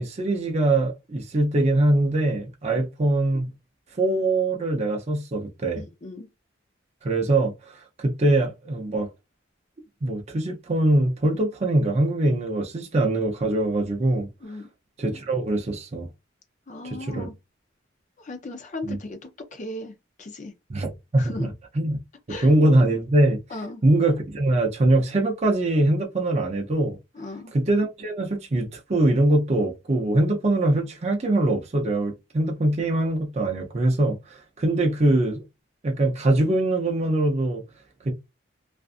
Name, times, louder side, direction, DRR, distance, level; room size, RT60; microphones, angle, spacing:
voice 1, 0.0-3.5 4.0-5.8 7.0-7.5 8.0-9.1 10.0-14.3 15.0-16.1 16.8-17.3 18.8-19.0 20.7-21.5 21.8-22.0 22.4-23.4 23.8-27.0 27.5-35.4 35.8-37.6 38.0-38.1, right 1 dB, 35° right, 0.5 m, -22 dB
voice 2, 5.8-6.3 14.4-14.6 16.7-17.3 18.2-19.2 19.5-20.5 21.2-21.5 22.3-22.5 23.5-23.8 27.1-27.5, left 2 dB, 40° left, 0.6 m, -36 dB
2.5 x 2.3 x 2.4 m
head